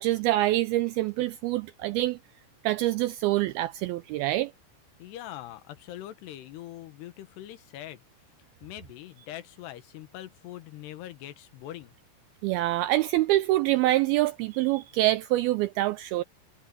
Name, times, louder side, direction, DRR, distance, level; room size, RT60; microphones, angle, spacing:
voice 1, 0.0-2.2 2.6-4.5 12.4-16.2, right 16 dB, 90° right, 2.2 m, -25 dB
voice 2, 5.0-8.0 8.6-11.9, left 13 dB, 80° left, 3.2 m, -42 dB
omnidirectional pair, 4.9 m